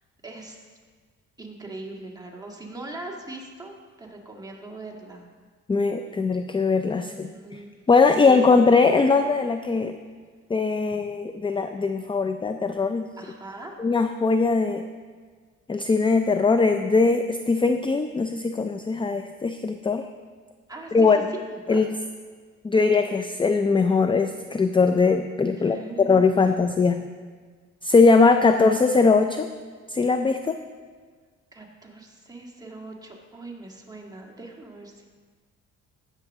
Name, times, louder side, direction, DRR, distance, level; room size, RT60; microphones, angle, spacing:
voice 1, 0.2-0.7 1.4-5.2 7.0-7.8 8.2-8.7 13.2-13.8 20.7-21.1 21.5-21.8 25.5-26.1 31.5-35.1, right 2 dB, 10° right, -1 dB, 1.9 m, -40 dB
voice 2, 5.7-7.6 7.9-10.0 10.5-13.1 13.8-14.9 15.7-20.0 20.9-21.2 21.7-21.9 22.6-27.0 27.8-29.5 29.9-30.6, left 4 dB, 15° left, 8 dB, 0.4 m, -21 dB
16.5 x 6.8 x 3.6 m, 1.5 s
cardioid pair, 90°, 30 cm